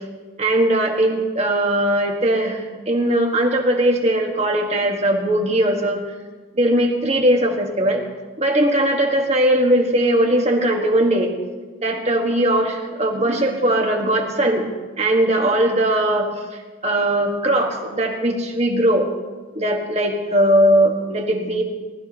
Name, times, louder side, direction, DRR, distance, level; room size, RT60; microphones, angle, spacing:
voice 1, 0.4-2.6 2.9-6.0 6.6-8.0 8.4-11.3 11.8-14.7 15.0-16.3 16.8-19.0 19.5-21.6, right 1 dB, 35° right, 2 dB, 1.7 m, -19 dB
19.0 x 13.0 x 3.0 m, 1.3 s
head